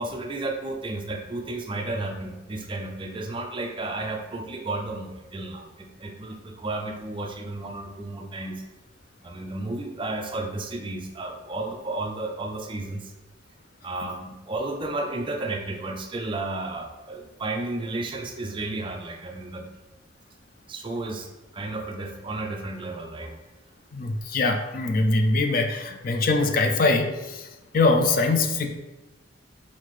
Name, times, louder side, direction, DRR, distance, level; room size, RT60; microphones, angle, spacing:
voice 1, 0.0-8.6 9.2-13.1 13.8-19.7 20.7-21.3 21.5-23.3, right 2 dB, 25° right, 3 dB, 0.4 m, -32 dB
voice 2, 23.9-27.5 27.7-28.7, left 3 dB, 45° left, 5 dB, 0.4 m, -23 dB
5.5 x 2.7 x 3.1 m, 1.1 s
head